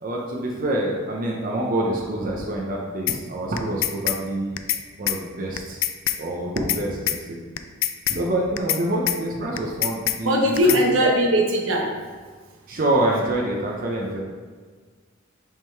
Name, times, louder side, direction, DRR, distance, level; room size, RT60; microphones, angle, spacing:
voice 1, 0.0-4.6 5.0-5.8 6.2-7.4 8.1-11.1 12.7-14.2, right 1 dB, 45° right, -2 dB, 0.7 m, -26 dB
sound 1, 3.1-3.2 3.6-4.2 4.6-4.8 5.1-5.2 5.6-6.2 6.6-6.8 7.1-7.2 7.6-8.2 8.6-8.8 9.1-9.2 9.6-10.2 10.6-10.8, left 13 dB, 85° left, 0.4 m, -24 dB
voice 2, 10.2-11.9, equal, 80° right, 0 dB, 1.0 m, -20 dB
5.7 x 3.8 x 4.4 m, 1.5 s
head